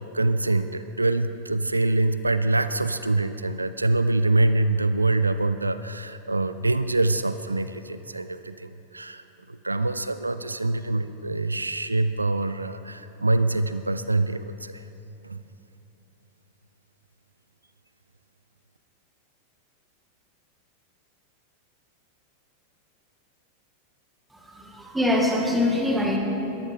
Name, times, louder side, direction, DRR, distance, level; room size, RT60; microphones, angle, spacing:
voice 1, 0.0-14.8 15.2-15.4, right 2 dB, 80° right, 12 dB, 0.4 m, -25 dB
voice 2, 24.3-26.2, left 1 dB, 5° right, 0 dB, 2.3 m, -24 dB
21.0 x 14.5 x 3.8 m, 2.9 s
figure-of-eight pair, 90°, 0 cm